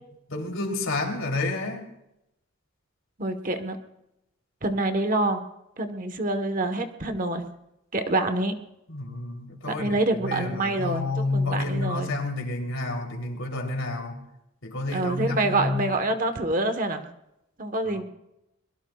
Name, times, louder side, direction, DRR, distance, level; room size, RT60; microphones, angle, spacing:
voice 1, 0.3-1.9 8.9-14.2 14.6-15.9 17.8-18.0, left 2 dB, 65° left, 3.4 m, -30 dB
voice 2, 3.2-3.8 4.6-5.4 5.8-7.4 7.9-8.6 9.7-12.1 14.9-17.0 17.6-18.0, right 2 dB, 35° right, 1.2 m, -26 dB
24.0 x 22.0 x 2.4 m
head